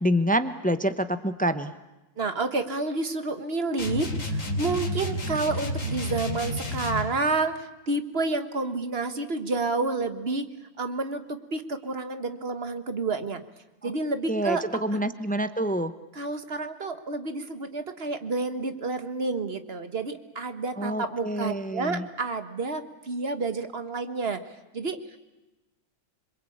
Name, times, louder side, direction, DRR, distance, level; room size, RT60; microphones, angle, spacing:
voice 1, 0.0-1.7 13.8-13.9 14.3-15.9 20.8-22.0, equal, 15° left, 11 dB, 0.3 m, -27 dB
voice 2, 2.2-10.5 10.8-13.4 13.8-14.7 14.9-15.0 16.1-24.4 24.7-25.2, right 3 dB, 35° right, 10 dB, 1.6 m, -29 dB
sound 1, 3.8-7.2, equal, 45° left, 3.1 m, -30 dB
26.5 x 22.5 x 8.6 m, 1.0 s
omnidirectional pair, 1.9 m